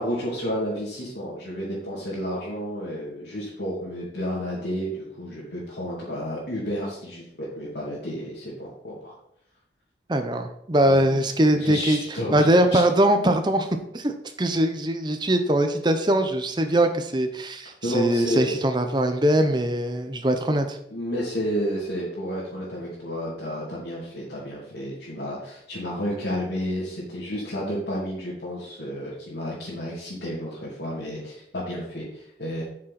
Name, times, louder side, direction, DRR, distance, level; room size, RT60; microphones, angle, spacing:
voice 1, 0.0-9.1 10.9-11.2 11.5-12.4 12.7-12.8 17.8-18.5 20.9-32.6, equal, 75° left, -8 dB, 2.8 m, -31 dB
voice 2, 10.1-12.0 12.3-13.7 13.9-20.8, right 1 dB, 25° right, 7 dB, 0.8 m, -22 dB
8.4 x 6.5 x 4.3 m, 0.74 s
head